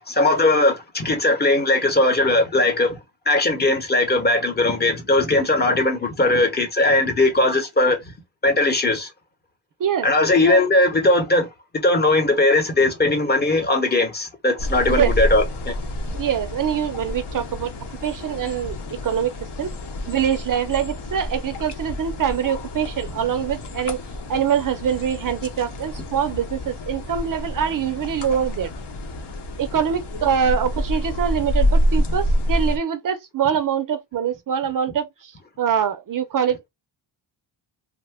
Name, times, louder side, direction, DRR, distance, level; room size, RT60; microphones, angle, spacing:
voice 1, 0.0-3.0 3.3-8.1 8.4-9.1 10.0-11.5 11.8-15.7, left 2 dB, 20° left, 1.0 m, -19 dB
sound 1, 14.6-32.8, left 1 dB, 55° left, 0.9 m, -28 dB
voice 2, 16.1-17.7 18.0-19.3 19.6-19.7 20.1-24.0 24.3-28.7 29.6-35.3 35.6-36.7, right 8 dB, 45° right, 0.5 m, -24 dB
2.8 x 2.1 x 3.4 m
cardioid pair, 115°, 49 cm